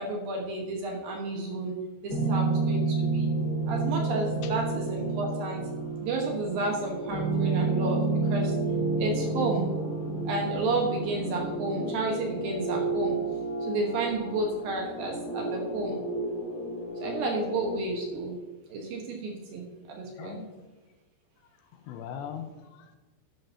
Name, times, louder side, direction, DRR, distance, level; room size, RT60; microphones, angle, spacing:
voice 1, 0.0-1.7 2.0-3.3 3.7-5.6 6.0-8.5 9.0-9.7 10.2-13.2 13.6-16.0 17.0-18.3 18.7-19.6 19.9-20.5, right 3 dB, 65° right, 0 dB, 2.6 m, -31 dB
sound 1, 2.1-17.8, right 3 dB, 40° left, 2.3 m, -30 dB
voice 2, 20.2-20.7 21.7-23.0, left 8 dB, 80° left, 7 dB, 2.8 m, -41 dB
11.5 x 11.5 x 2.8 m, 1.2 s
omnidirectional pair, 5.3 m